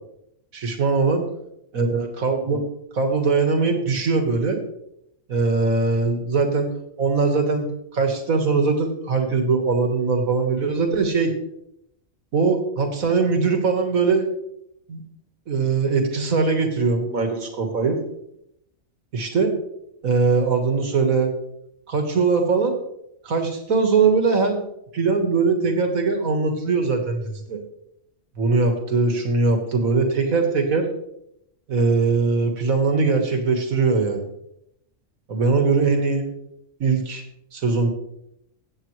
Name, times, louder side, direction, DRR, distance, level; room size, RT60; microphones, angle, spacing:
voice 1, 0.5-1.2 1.7-2.6 2.9-4.6 5.3-6.7 7.0-11.3 12.3-14.3 14.9-15.0 15.5-18.0 19.1-19.5 20.0-21.3 21.9-22.8 23.2-24.6 24.9-27.6 28.4-30.9 31.7-34.2 35.3-36.3 36.8-37.2 37.5-37.9, right 4 dB, 85° right, 4 dB, 2.1 m, -21 dB
15.5 x 8.4 x 3.2 m, 0.78 s
omnidirectional pair, 1.4 m